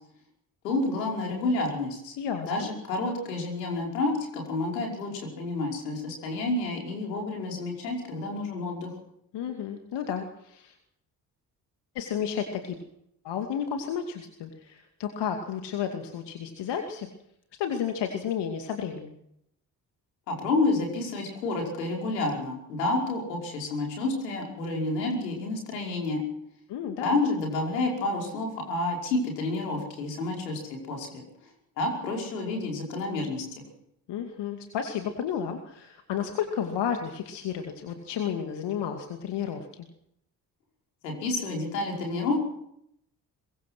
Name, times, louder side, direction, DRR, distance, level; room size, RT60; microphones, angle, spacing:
voice 1, 0.6-2.1 2.4-8.9 20.3-26.2 27.0-31.3 31.8-33.4 41.0-42.4, left 2 dB, 75° left, 1 dB, 5.4 m, -29 dB
voice 2, 2.2-2.7 9.3-10.8 11.9-12.8 13.2-17.1 17.6-19.2 26.7-27.1 34.1-39.9, left 8 dB, 55° left, 5 dB, 2.5 m, -32 dB
23.0 x 22.5 x 6.2 m, 0.76 s
figure-of-eight pair, 45°, 49 cm